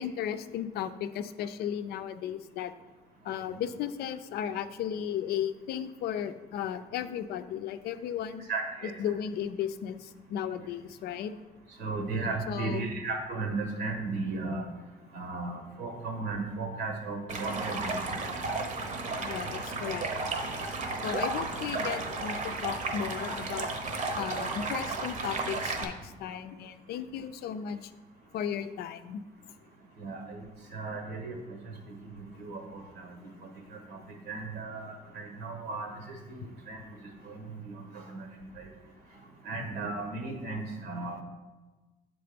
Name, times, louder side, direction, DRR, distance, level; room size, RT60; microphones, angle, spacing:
voice 1, 0.0-2.7 3.2-8.4 9.0-11.3 12.5-12.9 19.2-20.1 20.5-23.7 24.2-27.9 28.3-29.2 33.4-33.5 39.6-39.7, left 9 dB, 70° left, 10 dB, 0.4 m, -35 dB
voice 2, 8.5-8.9 11.8-14.6 15.1-18.2 21.0-21.1 30.0-30.4 30.7-31.4 32.4-33.1 33.9-34.0 34.3-36.4 36.7-36.8 37.2-37.7 38.1-38.3 38.6-38.7 39.4-41.2, right 3 dB, 75° right, 3 dB, 1.3 m, -35 dB
Stream, 17.3-25.8, right 3 dB, 45° right, 0.9 m, -33 dB
6.9 x 3.7 x 5.1 m, 1.2 s
cardioid pair, 110°, 17 cm